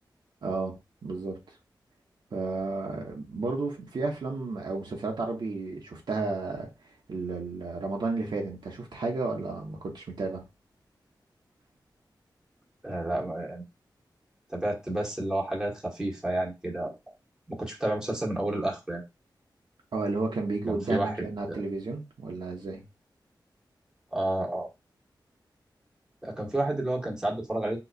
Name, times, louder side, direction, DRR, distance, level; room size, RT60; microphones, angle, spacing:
voice 1, 0.4-1.4 2.3-6.7 7.1-10.4 19.9-22.8, right 3 dB, 70° right, 1.0 m, -32 dB
voice 2, 12.8-13.6 14.5-16.9 17.5-19.0 20.7-21.6 24.1-24.7 26.2-27.8, right 1 dB, 10° right, 1.4 m, -30 dB
4.0 x 3.0 x 2.4 m
wide cardioid pair, 80°, 8 cm